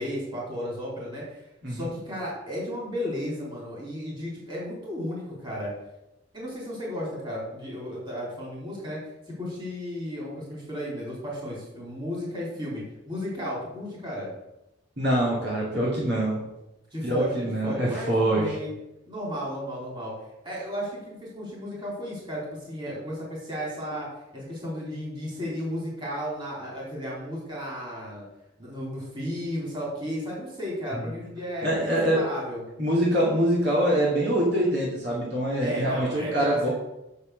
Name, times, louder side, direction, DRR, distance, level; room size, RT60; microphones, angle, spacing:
voice 1, 0.0-5.7 6.3-9.0 9.3-14.3 16.9-18.7 19.1-20.1 20.4-28.2 28.6-32.6 35.6-36.7, equal, 25° right, -5 dB, 3.8 m, -34 dB
voice 2, 15.0-16.4 17.0-18.5 30.9-31.1 31.6-32.2 32.8-36.7, right 1 dB, 55° right, -6 dB, 2.6 m, -24 dB
7.2 x 6.6 x 6.6 m, 0.92 s
head